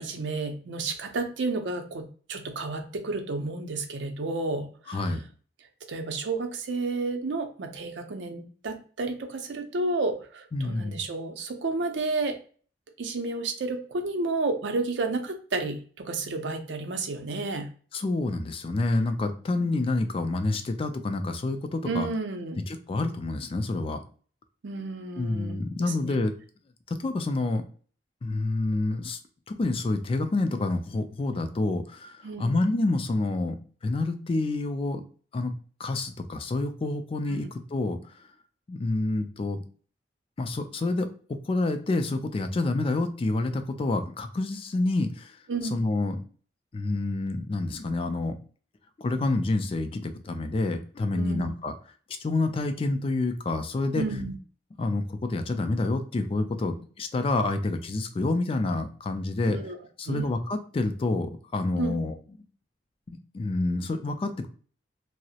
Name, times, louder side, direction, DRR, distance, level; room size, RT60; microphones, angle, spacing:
voice 1, 0.0-5.0 5.9-12.4 13.0-17.7 19.6-19.8 21.8-22.6 24.6-26.2 32.2-32.6 37.3-37.5 45.5-45.8 51.1-51.5 54.0-54.3 59.5-59.8 60.1-60.3 61.8-62.0, right 3 dB, 75° right, 5 dB, 0.5 m, -31 dB
voice 2, 4.9-5.2 10.5-11.0 17.9-22.1 22.7-24.0 25.2-26.3 26.9-27.6 28.2-29.2 29.5-33.6 33.8-35.0 35.3-35.5 35.8-38.0 38.7-39.6 40.4-41.1 41.5-45.3 45.7-46.2 46.7-48.4 49.0-51.7 52.2-54.0 54.8-59.6 60.0-62.1 63.1-64.5, left 2 dB, 30° left, 8 dB, 0.3 m, -28 dB
2.3 x 2.0 x 2.8 m, 0.43 s
head